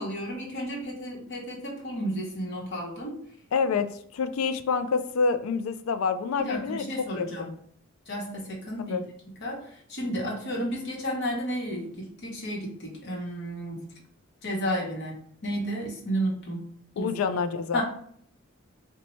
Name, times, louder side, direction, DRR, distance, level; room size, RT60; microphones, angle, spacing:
voice 1, 0.0-3.2 6.4-7.5 8.1-9.0 9.4-13.8 14.4-16.6 17.0-17.1 17.7-17.8, equal, 55° left, -2 dB, 1.0 m, -32 dB
voice 2, 3.5-6.8 7.2-7.6 8.9-9.0 17.0-17.8, left 5 dB, 85° left, 10 dB, 0.3 m, -27 dB
4.0 x 2.2 x 3.0 m, 0.63 s
head